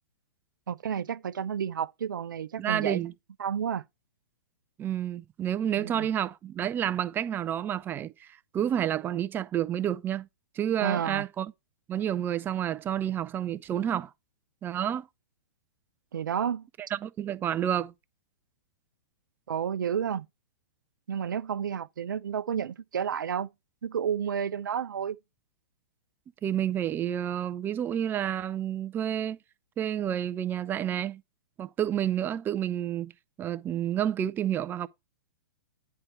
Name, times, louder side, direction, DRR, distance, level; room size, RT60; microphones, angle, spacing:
voice 1, 0.7-3.0 3.4-3.8 5.8-6.1 10.8-11.2 16.1-16.7 19.5-20.3 21.1-23.5 23.8-25.2, right 8 dB, 75° right, 0.5 m, -31 dB
voice 2, 2.6-3.1 4.8-8.3 8.5-10.3 10.6-11.5 11.9-14.1 14.6-15.1 16.9-17.9 26.4-29.4 29.8-31.2 31.6-33.1 33.4-34.9, right 10 dB, 20° right, 0.5 m, -29 dB
9.8 x 4.5 x 4.5 m
hypercardioid pair, 120°, 11 cm